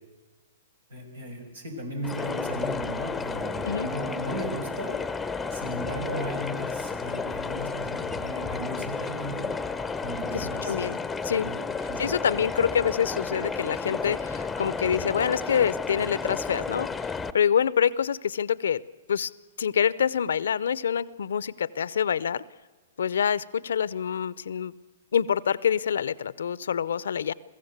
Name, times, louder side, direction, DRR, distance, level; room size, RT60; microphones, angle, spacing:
voice 1, 0.9-5.0 5.5-9.5 10.0-10.8 11.4-11.6 11.9-12.1, equal, 85° right, 4 dB, 5.6 m, -36 dB
sound 1, 2.0-17.3, left 4 dB, 10° left, 0.8 m, -32 dB
voice 2, 10.3-11.0 11.2-11.5 12.0-16.9 17.3-18.8 19.1-19.3 19.6-22.4 23.0-24.7 25.1-27.3, left 8 dB, 75° left, 19 dB, 0.7 m, -26 dB
22.5 x 15.0 x 8.1 m, 1.3 s
hypercardioid pair, 120°, 0 cm